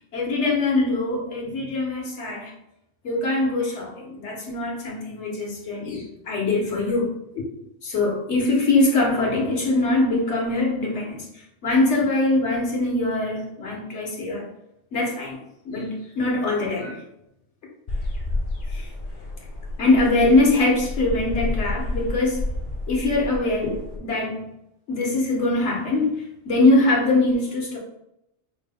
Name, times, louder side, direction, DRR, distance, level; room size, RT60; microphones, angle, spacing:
voice 1, 0.1-2.5 3.0-7.4 7.8-11.3 11.6-14.4 14.9-15.4 15.6-17.0 18.7-18.9 19.8-22.4 22.9-24.5 24.9-26.1 26.4-27.8, left 2 dB, 75° left, -2 dB, 1.4 m, -22 dB
sound 1, 17.9-24.0, left 2 dB, 50° left, 0.9 m, -30 dB
5.4 x 2.2 x 3.4 m, 0.83 s
omnidirectional pair, 1.2 m